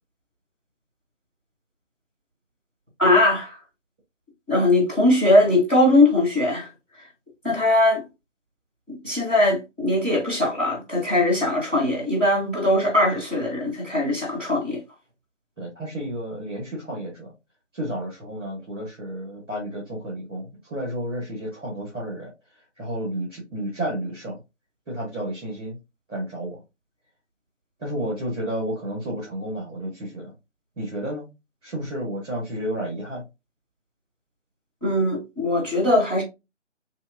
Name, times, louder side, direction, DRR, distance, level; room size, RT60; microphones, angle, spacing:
voice 1, 3.0-3.6 4.5-6.7 7.4-8.0 8.9-14.8 34.8-36.2, left 1 dB, 10° left, 1.2 m, -20 dB
voice 2, 15.6-17.3 17.7-22.3 22.8-24.4 24.9-25.8 26.1-26.6 27.8-30.3 30.8-31.3 31.6-33.2, right 1 dB, 5° right, 0.9 m, -31 dB
3.0 x 2.8 x 2.7 m
figure-of-eight pair, 155°, 37 cm